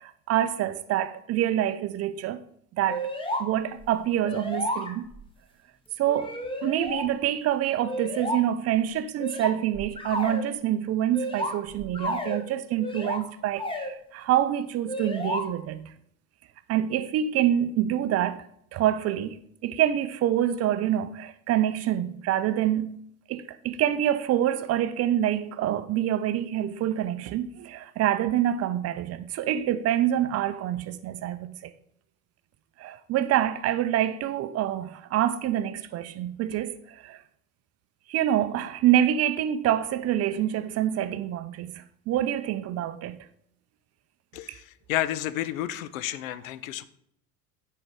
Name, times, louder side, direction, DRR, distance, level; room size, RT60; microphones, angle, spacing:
voice 1, 0.0-2.4 2.7-3.1 3.4-5.1 6.0-15.9 16.7-18.4 18.7-19.4 19.6-22.9 23.3-31.7 32.8-37.2 38.1-43.3 44.5-44.6, right 11 dB, 35° right, 0.6 m, -26 dB
sound 1, 2.9-3.5 3.8-3.9 4.2-5.2 6.1-7.1 7.8-8.4 9.2-10.4 11.1-12.4 12.8-13.2 13.6-13.9 14.9-15.4, left 1 dB, 10° left, 1.3 m, -32 dB
voice 2, 44.3-46.8, left 13 dB, 60° left, 0.6 m, -31 dB
9.6 x 4.6 x 5.2 m
figure-of-eight pair, 65°, 45 cm